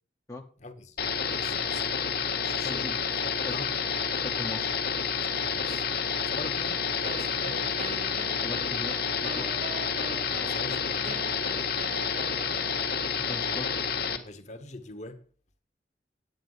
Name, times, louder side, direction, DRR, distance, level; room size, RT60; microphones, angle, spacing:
voice 1, 0.6-1.0 1.3-1.9 2.4-2.8 3.2-3.7 5.3-5.8 6.3-7.8 10.3-11.2 14.2-15.2, left 1 dB, 40° left, 1.1 m, -43 dB
sound 1, 1.0-14.2, left 6 dB, 55° left, 1.4 m, -29 dB
voice 2, 2.6-2.9 3.4-3.5 4.1-4.8 8.4-9.0 9.2-9.5 13.3-13.7, left 2 dB, 15° left, 0.8 m, -38 dB
Wind instrument woodwind instrument, 7.0-13.1, right 3 dB, 35° right, 0.5 m, -42 dB
9.4 x 8.8 x 5.4 m
head